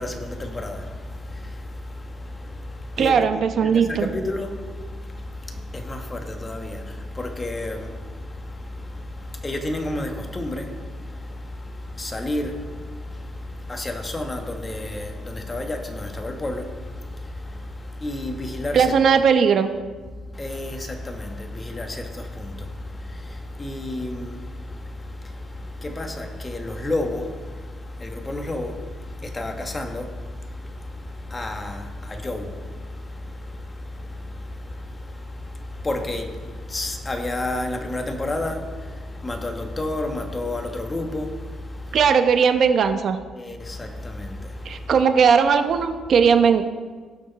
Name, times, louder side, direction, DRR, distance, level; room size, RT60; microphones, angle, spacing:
voice 1, 0.0-3.3 3.6-19.0 20.2-42.1 43.3-45.0, left 1 dB, 20° left, 1.4 m, -31 dB
voice 2, 3.0-4.1 18.7-19.7 41.9-43.2 44.6-46.6, right 6 dB, 55° right, 0.9 m, -18 dB
18.0 x 6.5 x 4.1 m
cardioid pair, 120°, 0 cm